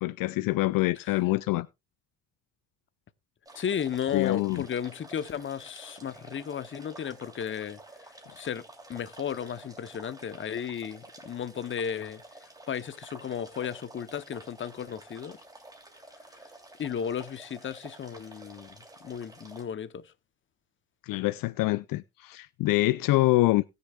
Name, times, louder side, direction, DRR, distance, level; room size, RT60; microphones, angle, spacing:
voice 1, 0.0-1.7 4.1-4.6 21.0-23.6, left 19 dB, 65° left, 0.5 m, -25 dB
voice 2, 3.5-8.6 8.9-15.4 16.3-16.5 16.8-20.1, left 8 dB, 30° left, 0.8 m, -35 dB
sound 1, 3.5-19.6, right 1 dB, 10° right, 3.0 m, -50 dB
20.0 x 6.8 x 2.3 m
supercardioid pair, 90°, 37 cm